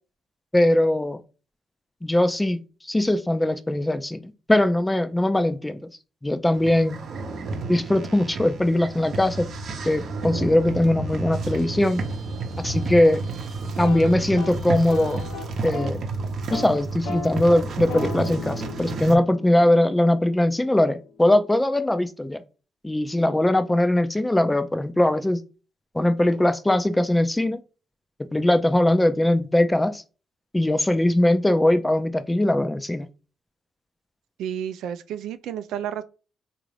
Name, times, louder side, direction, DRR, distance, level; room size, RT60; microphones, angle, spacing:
voice 1, 0.5-1.2 2.0-5.8 6.2-7.0 7.7-9.5 9.9-12.0 12.6-13.2 13.8-15.2 15.6-16.0 16.5-22.4 22.8-25.4 25.9-27.6 28.3-30.0 30.5-33.1, left 1 dB, 10° left, 0.4 m, -21 dB
sound 1, 6.5-19.2, right 3 dB, 60° right, 0.7 m, -31 dB
sound 2, 13.7-16.0 16.3-16.7 17.0-20.9, left 4 dB, 85° left, 0.9 m, -37 dB
voice 2, 34.4-36.0, right 9 dB, 80° right, 0.4 m, -31 dB
3.6 x 2.5 x 3.2 m
cardioid pair, 90°, 0 cm